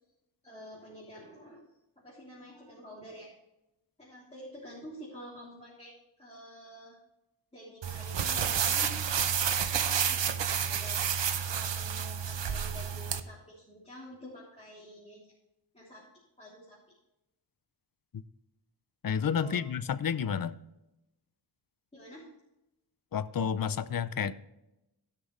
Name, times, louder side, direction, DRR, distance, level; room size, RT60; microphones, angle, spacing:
voice 1, 0.4-1.6 2.0-3.3 4.0-5.9 6.2-7.0 7.5-8.9 9.7-11.0 11.4-15.3 15.7-16.0 16.4-16.8 19.4-19.6 21.9-22.3, equal, 15° left, -7 dB, 3.2 m, -48 dB
sound 1, 7.8-13.2, right 8 dB, 75° right, 0.9 m, -30 dB
voice 2, 19.0-20.6 23.1-24.3, left 7 dB, 50° left, 13 dB, 0.7 m, -30 dB
16.0 x 6.0 x 3.2 m, 0.91 s
wide cardioid pair, 95°, 44 cm